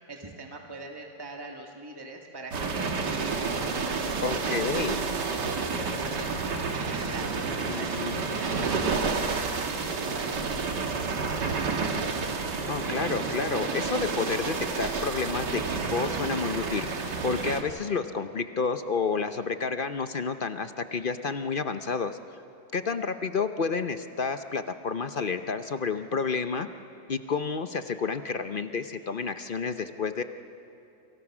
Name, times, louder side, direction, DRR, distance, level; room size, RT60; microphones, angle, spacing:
voice 1, 0.1-4.4 5.0-6.8 7.1-11.2, right 2 dB, 15° right, 2 dB, 2.0 m, -43 dB
sound 1, 2.5-17.6, right 4 dB, 70° right, 2.3 m, -30 dB
voice 2, 4.2-5.1 7.7-8.2 12.7-16.9 17.2-22.2 22.7-26.7 27.1-30.2, left 5 dB, 50° left, 9 dB, 0.6 m, -30 dB
29.0 x 25.5 x 6.2 m, 2.8 s
omnidirectional pair, 1.9 m